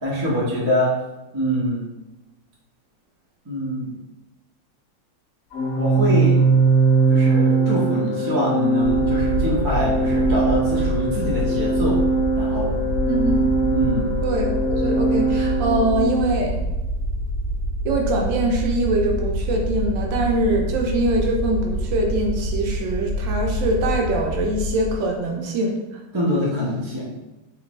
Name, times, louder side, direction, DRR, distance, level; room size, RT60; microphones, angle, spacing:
voice 1, 0.0-0.9 1.3-1.9 3.4-4.0 5.8-6.4 7.1-12.0 12.4-12.8 13.7-14.1 26.1-27.1, left 1 dB, 20° right, -7 dB, 0.6 m, -24 dB
Organ, 5.5-16.3, right 3 dB, 70° left, 0.8 m, -21 dB
sound 1, 8.8-25.0, equal, 45° right, 1.4 m, -26 dB
voice 2, 13.1-13.4 14.2-16.7 17.8-25.7, right 2 dB, 75° right, 0 dB, 1.3 m, -23 dB
3.4 x 3.2 x 3.1 m, 0.99 s
omnidirectional pair, 2.1 m